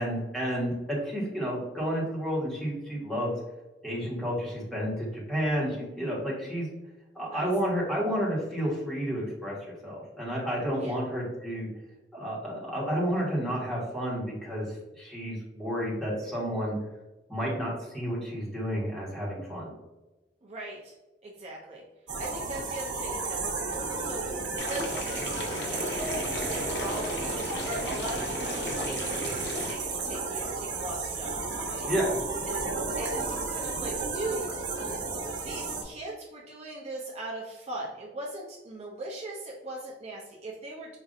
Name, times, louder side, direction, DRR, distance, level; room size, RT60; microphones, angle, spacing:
voice 1, 0.0-3.4 3.8-6.7 7.1-9.6 9.8-11.7 12.1-14.6 15.0-16.8 17.3-19.7 31.8-32.2, equal, 5° left, -6 dB, 1.3 m, -31 dB
voice 2, 20.4-20.9 21.2-21.8 22.2-31.9 32.5-32.6 33.0-34.5 35.4-41.0, right 2 dB, 40° right, -3 dB, 0.6 m, -39 dB
sound 1, 22.1-35.8, right 4 dB, 75° right, 1.0 m, -33 dB
sound 2, 24.6-29.7, left 1 dB, 65° left, 0.7 m, -35 dB
5.2 x 2.6 x 2.5 m, 1.1 s
head